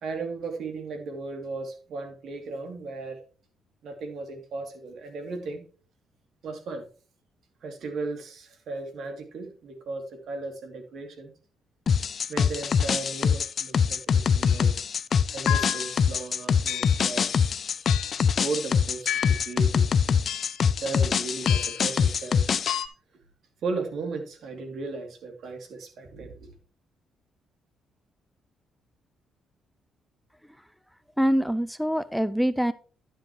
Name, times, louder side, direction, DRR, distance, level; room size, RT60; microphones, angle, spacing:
voice 1, 0.0-3.2 3.8-5.7 6.4-6.9 7.6-11.3 12.3-14.7 15.3-17.3 18.4-19.9 20.8-22.6 23.6-26.5, right 3 dB, 70° right, 2.7 m, -36 dB
sound 1, 11.9-22.8, left 6 dB, 50° left, 0.5 m, -24 dB
sound 2, 14.5-14.7 15.5-16.0 16.7-17.1 17.9-18.3 19.1-19.5 20.3-20.7 21.5-21.9 22.7-22.9, left 11 dB, 75° left, 1.1 m, -32 dB
voice 2, 31.2-32.7, equal, ahead, 0.5 m, -24 dB
11.0 x 7.6 x 3.1 m
cardioid pair, 90°, 0 cm